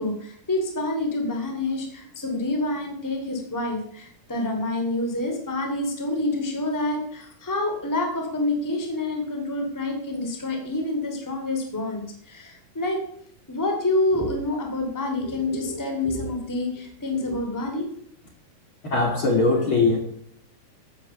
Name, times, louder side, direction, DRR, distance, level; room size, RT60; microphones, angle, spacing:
voice 1, 0.0-13.0 13.5-17.9, left 2 dB, 5° left, 3 dB, 2.4 m, -27 dB
voice 2, 18.9-20.0, left 3 dB, 40° left, 1 dB, 2.9 m, -20 dB
14.5 x 8.9 x 6.8 m, 0.65 s
omnidirectional pair, 4.0 m